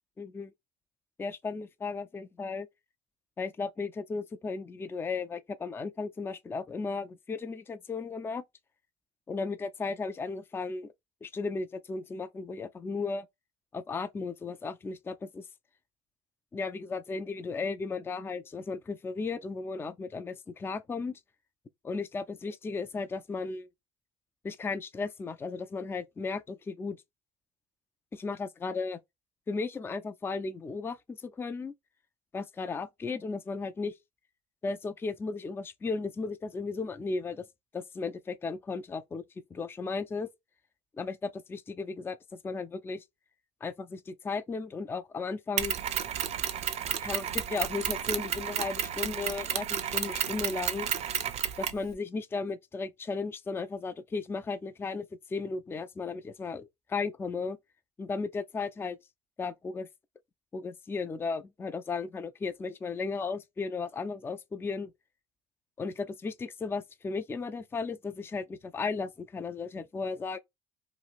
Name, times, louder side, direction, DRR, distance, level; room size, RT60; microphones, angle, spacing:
voice 1, 0.2-0.5 1.2-2.7 3.4-8.4 9.3-10.9 11.2-13.3 13.7-15.5 16.5-21.2 21.8-23.7 24.4-27.0 28.1-29.0 29.5-31.7 32.3-33.9 34.6-37.4 37.7-39.2 39.5-40.3 41.0-43.0 43.6-45.8 47.0-50.9 51.6-57.6 58.0-59.0 59.4-59.9 60.5-64.9 65.8-70.4, left 4 dB, 15° left, 0.3 m, -35 dB
Mechanisms, 45.6-51.9, right 9 dB, 50° right, 0.5 m, -32 dB
3.0 x 2.4 x 2.4 m
supercardioid pair, 95°, 15 cm